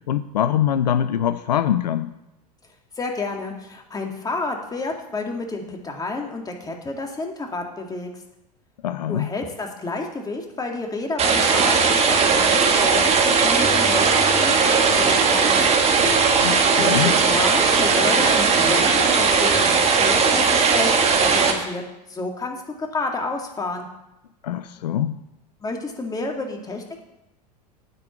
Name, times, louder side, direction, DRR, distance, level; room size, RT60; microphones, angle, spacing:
voice 1, 0.1-2.1 8.8-9.3 16.3-17.1 24.4-25.1, left 10 dB, 85° left, 13 dB, 0.5 m, -23 dB
voice 2, 3.0-8.1 9.1-15.6 16.8-21.8 22.1-23.9 25.6-27.0, left 3 dB, 20° left, 2 dB, 2.1 m, -30 dB
sound 1, 11.2-21.5, right 5 dB, 30° right, 1.7 m, -18 dB
9.4 x 5.4 x 8.0 m, 0.91 s
hypercardioid pair, 90°, 20 cm